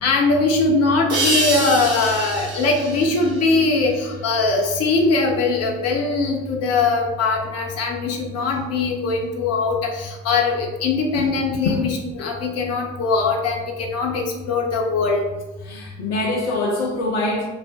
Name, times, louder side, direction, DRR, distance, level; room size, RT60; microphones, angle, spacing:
voice 1, 0.0-15.2, left 3 dB, 45° left, 0.8 m, -21 dB
sound 1, 1.1-4.5, right 3 dB, 45° right, 1.2 m, -27 dB
voice 2, 15.6-17.5, left 2 dB, 70° left, 0.5 m, -24 dB
3.8 x 2.0 x 4.0 m
figure-of-eight pair, 50°, 35 cm